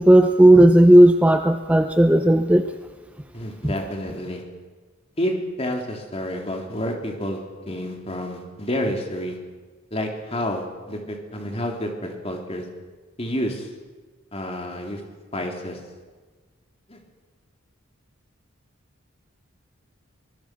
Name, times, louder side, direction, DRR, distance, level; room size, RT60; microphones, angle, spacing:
voice 1, 0.0-2.6, right 1 dB, 5° right, 7 dB, 0.6 m, -13 dB
voice 2, 3.3-4.4 5.2-7.4 7.7-9.4 9.9-12.6 13.2-13.7 14.3-15.0 15.3-15.8 16.9-17.0, equal, 30° left, 2 dB, 3.4 m, -29 dB
24.0 x 21.0 x 6.2 m, 1.4 s
head